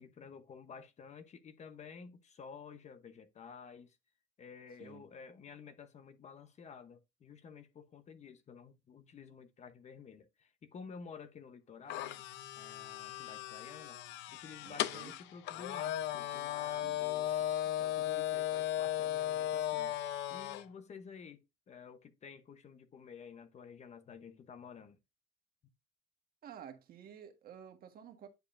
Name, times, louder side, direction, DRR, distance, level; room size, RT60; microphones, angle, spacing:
voice 1, 0.0-4.0 4.4-12.1 12.5-14.0 14.3-19.9 20.3-25.0, left 6 dB, 35° left, 0.8 m, -52 dB
sound 1, 11.9-20.6, left 12 dB, 75° left, 0.6 m, -36 dB
voice 2, 14.6-15.1 16.8-17.0 26.4-28.3, right 8 dB, 55° right, 1.4 m, -51 dB
9.2 x 4.9 x 2.5 m
cardioid pair, 115°, 19 cm